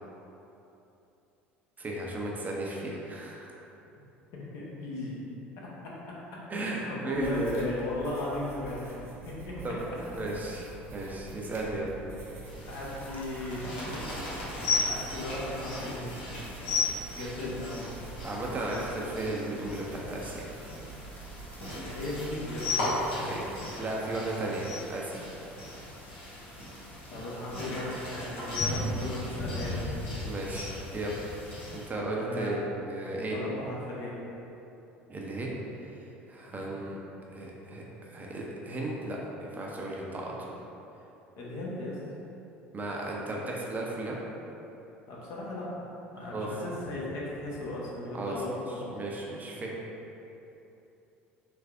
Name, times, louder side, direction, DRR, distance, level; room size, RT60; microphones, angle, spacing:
voice 1, 1.8-3.5 6.5-7.5 9.6-9.8 10.1-11.9 18.2-20.5 23.2-23.5 23.8-25.3 30.2-31.1 31.7-33.4 35.1-35.5 36.3-37.0 37.3-40.5 42.7-44.2 46.3-46.5 48.1-48.3 48.9-49.7, right 2 dB, 25° right, -2 dB, 0.5 m, -35 dB
voice 2, 4.3-5.2 5.6-5.9 6.7-9.6 12.7-13.7 14.9-16.2 17.1-17.8 21.9-22.7 27.1-29.8 32.2-32.6 33.3-34.1 36.5-36.8 41.4-42.0 45.1-45.7 46.1-48.9, left 2 dB, 55° left, -5 dB, 0.8 m, -36 dB
sound 1, 7.1-23.8, right 3 dB, 45° right, 0.9 m, -46 dB
sound 2, 12.4-31.9, left 3 dB, 75° left, 1.1 m, -37 dB
sound 3, 12.6-31.8, left 1 dB, 25° left, 0.6 m, -43 dB
3.3 x 3.2 x 2.4 m, 2.9 s
figure-of-eight pair, 65°, 6 cm